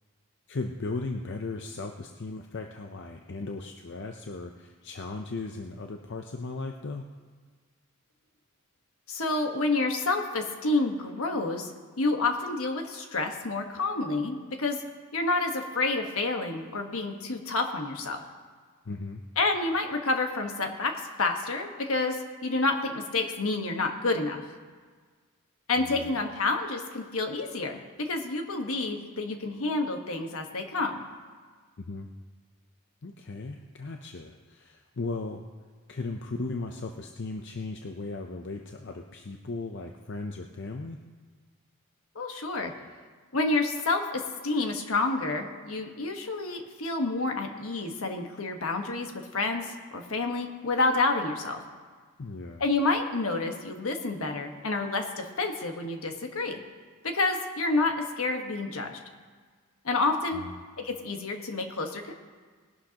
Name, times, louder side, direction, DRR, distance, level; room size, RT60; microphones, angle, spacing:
voice 1, 0.5-7.0 18.9-19.2 25.8-26.2 31.8-32.1 33.0-35.5 35.9-41.0 52.2-52.6 60.3-60.6, left 3 dB, 55° left, 4 dB, 0.6 m, -37 dB
voice 2, 9.1-11.7 12.0-14.8 15.1-18.2 19.4-20.9 21.2-24.4 25.7-31.0 42.1-42.7 43.3-51.6 52.6-56.6 57.0-59.0 59.8-60.4 60.8-62.1, left 3 dB, 70° left, 4 dB, 1.3 m, -29 dB
19.5 x 11.5 x 2.9 m, 1.5 s
head